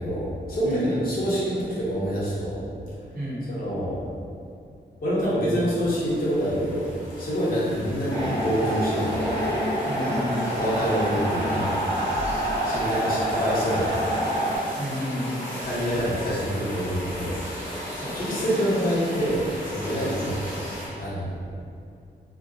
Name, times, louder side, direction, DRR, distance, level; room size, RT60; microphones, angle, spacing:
voice 1, 0.0-2.7 3.5-4.1 5.0-6.9 7.2-9.4 10.4-11.9 12.6-14.0 15.6-17.4 17.8-21.5, equal, 50° left, -9 dB, 0.8 m, -27 dB
voice 2, 0.6-1.2 3.1-3.5 9.8-10.5 14.8-15.5 17.9-18.4, equal, 50° right, -11 dB, 1.1 m, -32 dB
sound 1, 5.9-20.9, equal, 10° right, 0.8 m, -37 dB
sound 2, 8.1-14.6, equal, 20° left, 0.6 m, -26 dB
2.3 x 2.0 x 2.6 m, 2.3 s
wide cardioid pair, 155°, 18 cm